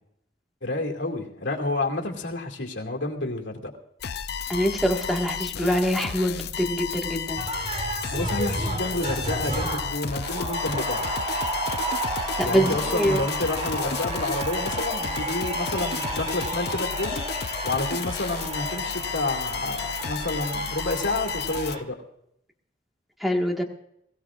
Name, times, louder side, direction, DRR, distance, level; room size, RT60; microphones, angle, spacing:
voice 1, 0.6-3.7 8.1-11.0 12.5-17.2 17.6-22.0, left 2 dB, 90° left, 1 dB, 2.4 m, -29 dB
sound 1, 4.0-21.8, left 6 dB, 60° left, 0.5 m, -32 dB
voice 2, 4.5-7.4 12.4-13.2 23.2-23.6, equal, ahead, 1 dB, 1.7 m, -24 dB
sound 2, 7.4-21.8, right 2 dB, 35° right, 2.7 m, -32 dB
22.0 x 16.0 x 2.5 m, 0.75 s
head